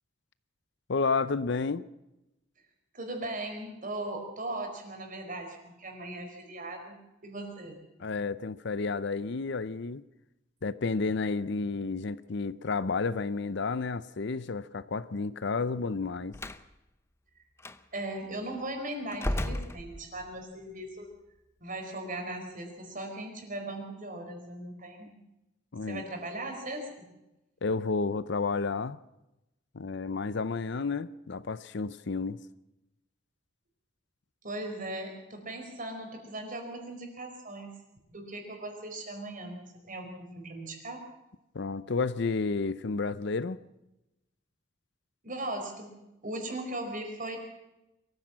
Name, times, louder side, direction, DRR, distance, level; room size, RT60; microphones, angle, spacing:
voice 1, 0.9-1.8 8.0-10.0 10.6-16.4 25.7-26.0 27.6-29.0 29.7-32.4 41.5-43.6, left 4 dB, 60° left, 16 dB, 0.6 m, -31 dB
voice 2, 2.9-7.8 17.9-21.1 21.6-25.1 25.9-27.1 34.4-37.7 38.1-41.0 45.2-45.9 46.2-47.4, right 1 dB, 45° right, 4 dB, 4.7 m, -38 dB
Slam, 16.3-16.7 17.6-17.8 19.1-20.4, left 1 dB, 15° left, 0.7 m, -34 dB
23.5 x 15.0 x 7.5 m, 0.95 s
head